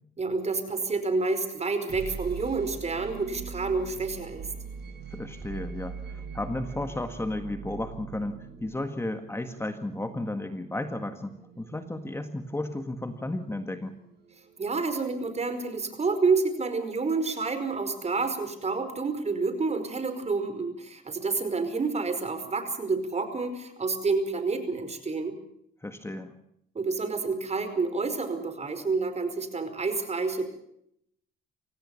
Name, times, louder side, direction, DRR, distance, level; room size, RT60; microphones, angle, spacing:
voice 1, 0.2-4.5 14.6-25.3 26.7-30.5, right 4 dB, 35° right, 9 dB, 4.9 m, -29 dB
sound 1, 1.6-15.4, right 6 dB, 55° right, 6.9 m, -43 dB
voice 2, 5.1-14.0 25.8-26.3, left 1 dB, 10° left, 7 dB, 1.8 m, -34 dB
25.5 x 17.5 x 7.2 m, 0.73 s
cardioid pair, 90°, 20 cm